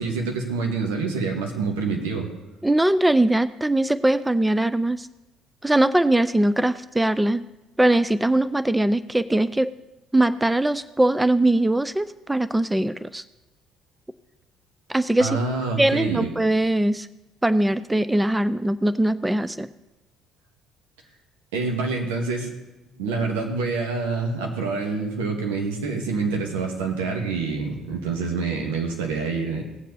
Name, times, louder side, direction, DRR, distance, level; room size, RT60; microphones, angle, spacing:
voice 1, 0.0-2.3 15.2-16.3 21.5-22.5 22.9-29.6, right 4 dB, 85° right, 1 dB, 1.9 m, -26 dB
voice 2, 2.6-5.1 5.6-7.4 7.8-9.7 10.1-13.2 14.9-15.4 15.8-17.1 17.4-19.7, right 1 dB, 10° right, 14 dB, 0.4 m, -21 dB
18.0 x 7.3 x 4.1 m, 1.0 s
hypercardioid pair, 60°, 0 cm